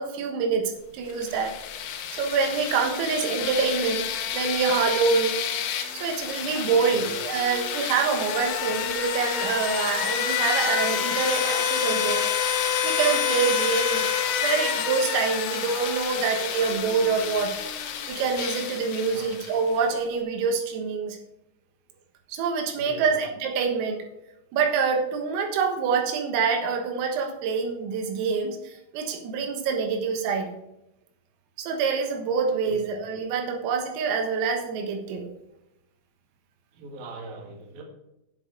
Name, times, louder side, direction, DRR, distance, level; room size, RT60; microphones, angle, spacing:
voice 1, 0.0-1.6 2.1-4.1 4.3-5.4 5.9-12.2 12.5-12.6 12.8-14.1 14.4-17.6 18.1-21.2 22.3-24.0 24.5-30.5 31.6-35.3, right 5 dB, 90° right, 3 dB, 4.1 m, -26 dB
sound 1, 1.1-19.8, left 8 dB, 80° left, 3.6 m, -28 dB
voice 2, 22.8-23.1 32.6-32.7 36.8-37.8, right 3 dB, 55° right, 0 dB, 3.4 m, -41 dB
9.8 x 8.1 x 4.9 m, 0.91 s
omnidirectional pair, 5.8 m